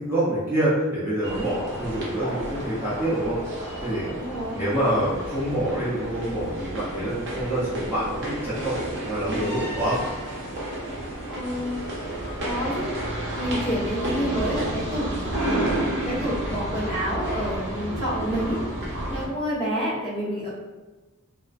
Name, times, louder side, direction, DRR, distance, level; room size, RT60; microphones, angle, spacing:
voice 1, 0.0-3.4 3.8-4.1 4.5-10.0, right 1 dB, 10° right, -11 dB, 0.5 m, -26 dB
sound 1, 1.2-19.3, right 1 dB, 55° right, 0.6 m, -31 dB
voice 2, 4.0-4.7 11.3-11.8 12.4-12.9 13.3-15.6 16.0-18.6 19.1-20.5, equal, 25° left, -9 dB, 0.9 m, -28 dB
2.4 x 2.1 x 2.4 m, 1.2 s
head